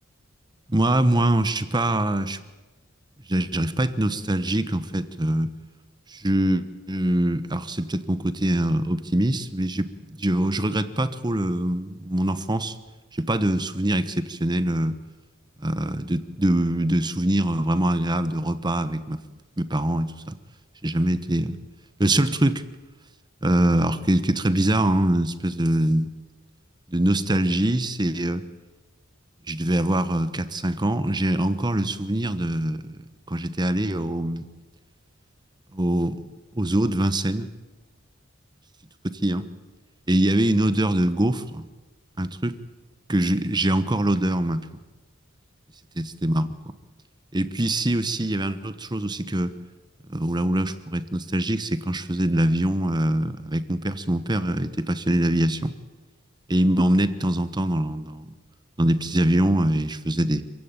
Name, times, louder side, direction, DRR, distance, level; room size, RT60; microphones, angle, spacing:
voice 1, 0.7-2.4 3.3-5.5 6.1-9.9 10.2-12.8 13.1-15.0 15.6-19.2 19.6-20.3 20.8-21.6 22.0-22.6 23.4-26.1 26.9-28.4 29.5-33.0 33.3-34.4 35.7-36.2 36.5-37.5 39.2-39.4 40.1-41.7 42.2-42.5 43.1-44.7 46.0-46.5 47.3-49.5 50.1-55.7 56.5-58.4 58.8-60.4, right 1 dB, 20° right, 12 dB, 1.1 m, -23 dB
26.0 x 16.0 x 8.9 m, 1.2 s
head